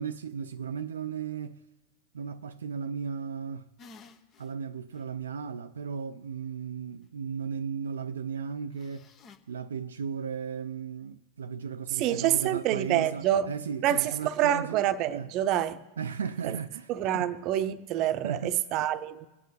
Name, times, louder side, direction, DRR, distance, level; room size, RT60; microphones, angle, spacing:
voice 1, 0.0-1.6 2.1-3.6 4.4-9.1 9.5-14.8 15.1-15.3 16.0-16.9 17.1-17.3 18.2-18.6, right 6 dB, 85° right, 0.4 m, -35 dB
sound 1, 3.8-4.5 4.9-5.0 8.7-9.4, left 4 dB, 40° left, 1.1 m, -52 dB
voice 2, 11.9-13.5 13.8-15.8 16.4-16.6 16.9-19.3, right 12 dB, 50° right, 0.7 m, -27 dB
21.5 x 8.4 x 4.0 m
hypercardioid pair, 100°, 0 cm